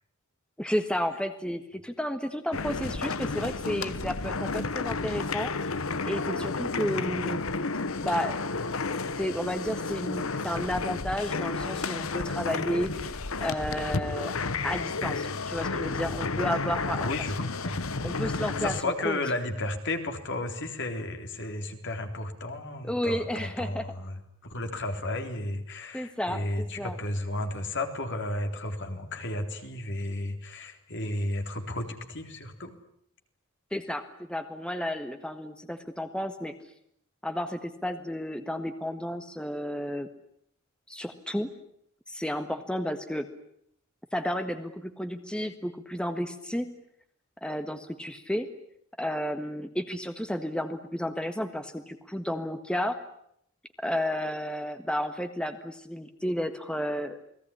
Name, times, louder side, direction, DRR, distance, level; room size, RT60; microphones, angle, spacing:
voice 1, 0.6-5.5 6.0-7.5 8.0-8.4 9.2-13.1 13.4-14.3 14.6-17.1 17.4-17.5 18.0-19.2 22.9-23.9 25.9-27.0 33.7-36.5 37.2-40.1 40.9-41.5 42.1-43.3 44.1-46.7 47.4-48.5 49.0-53.0 53.8-57.2, equal, 5° left, 8 dB, 1.6 m, -32 dB
sound 1, 2.5-18.8, left 4 dB, 80° left, 1.3 m, -32 dB
voice 2, 16.9-17.8 18.3-32.7, left 1 dB, 60° left, 5 dB, 3.8 m, -33 dB
29.0 x 20.5 x 10.0 m, 0.71 s
head